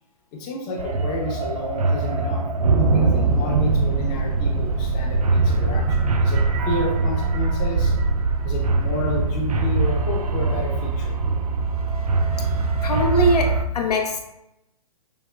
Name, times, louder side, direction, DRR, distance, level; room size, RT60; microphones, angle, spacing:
voice 1, 0.3-2.4 2.7-7.9 8.4-11.2, left 2 dB, 25° left, -1 dB, 0.7 m, -31 dB
sound 1, 0.8-13.6, right 3 dB, 70° right, 0.4 m, -22 dB
voice 2, 12.8-14.2, equal, 75° left, 1 dB, 0.7 m, -22 dB
4.9 x 2.0 x 2.2 m, 0.86 s
hypercardioid pair, 135°, 20 cm